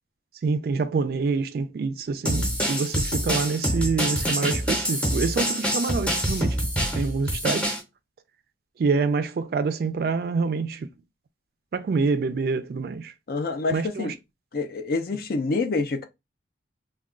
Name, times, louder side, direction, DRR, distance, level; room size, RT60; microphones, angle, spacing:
voice 1, 0.4-6.6 6.9-7.8 8.8-10.9 11.7-13.1 13.7-14.1, right 4 dB, 55° right, 0.3 m, -26 dB
sound 1, 2.2-7.8, equal, 5° left, 0.7 m, -26 dB
voice 2, 13.3-14.2 14.5-16.1, left 3 dB, 50° left, 0.4 m, -27 dB
2.3 x 2.2 x 3.6 m
head